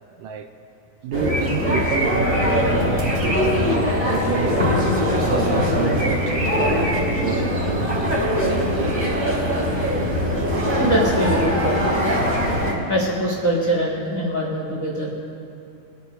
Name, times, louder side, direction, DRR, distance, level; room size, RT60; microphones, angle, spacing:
voice 1, 0.2-0.5 1.0-4.6 5.2-9.1 10.8-11.0, right 8 dB, 80° right, 6 dB, 2.1 m, -30 dB
sound 1, 1.1-12.7, equal, 15° right, 3.1 m, -21 dB
voice 2, 10.8-11.8 12.9-15.1, equal, 30° left, -4 dB, 1.5 m, -23 dB
23.0 x 9.8 x 3.1 m, 2.8 s
omnidirectional pair, 3.9 m